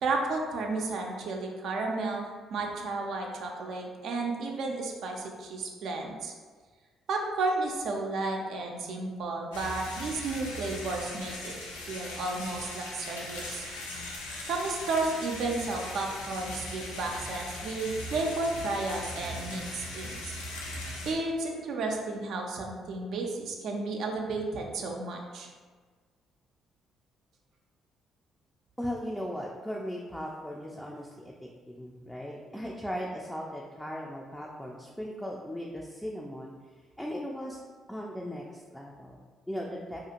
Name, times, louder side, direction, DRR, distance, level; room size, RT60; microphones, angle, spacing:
voice 1, 0.0-6.3 7.1-11.6 11.9-13.6 14.5-20.4 21.1-25.5, right 3 dB, 65° right, 1 dB, 0.4 m, -32 dB
sound 1, 9.5-21.1, left 1 dB, 90° left, 0.4 m, -39 dB
voice 2, 28.8-37.6 37.9-40.0, equal, 5° left, -2 dB, 0.3 m, -38 dB
2.5 x 2.4 x 2.8 m, 1.5 s
hypercardioid pair, 50°, 0 cm